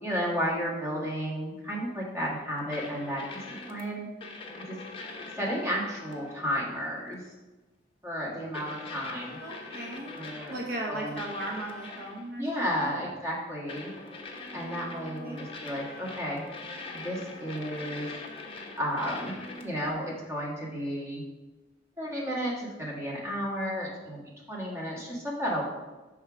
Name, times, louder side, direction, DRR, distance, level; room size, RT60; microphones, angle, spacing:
voice 1, 0.0-3.2 3.7-4.1 4.6-4.8 5.4-7.2 8.0-9.4 10.2-10.5 10.9-11.2 12.4-13.9 14.5-16.4 16.9-18.1 18.8-19.3 19.6-21.2 22.0-24.2 24.5-25.6, equal, 15° right, -5 dB, 1.4 m, -32 dB
sound 1, 2.7-3.8 4.2-6.5 7.1-7.3 8.5-10.8 11.2-12.3 13.7-19.9, left 3 dB, 30° left, 0.7 m, -42 dB
voice 2, 9.4-10.2 10.5-13.0 15.2-15.4, right 1 dB, 55° right, -1 dB, 0.8 m, -37 dB
5.5 x 3.6 x 5.8 m, 1.1 s
head